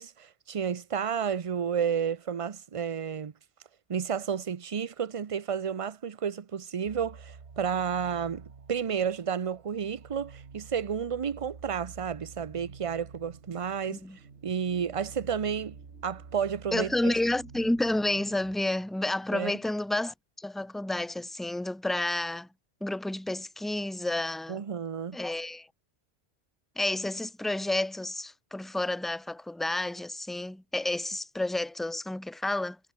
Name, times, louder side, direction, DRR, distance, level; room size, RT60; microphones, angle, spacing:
voice 1, 0.0-3.3 3.9-14.0 14.4-15.8 16.0-17.1 19.3-19.5 24.5-25.2, right 7 dB, 35° right, 0.6 m, -31 dB
sound 1, 6.8-18.6, right 5 dB, 55° right, 1.8 m, -49 dB
voice 2, 16.7-22.5 22.8-24.6 25.1-25.7 26.8-32.8, left 1 dB, ahead, 1.3 m, -30 dB
omnidirectional pair, 1.2 m